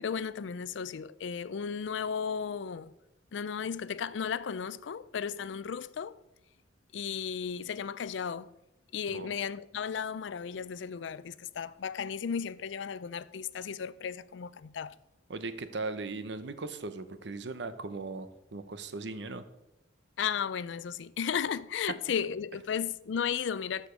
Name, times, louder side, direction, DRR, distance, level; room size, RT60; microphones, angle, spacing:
voice 1, 0.0-2.9 3.3-6.2 6.9-8.5 8.9-15.0 20.2-23.9, left 7 dB, 80° left, 0.4 m, -34 dB
voice 2, 15.3-19.4, right 3 dB, 65° right, 0.8 m, -38 dB
13.0 x 5.1 x 5.1 m
head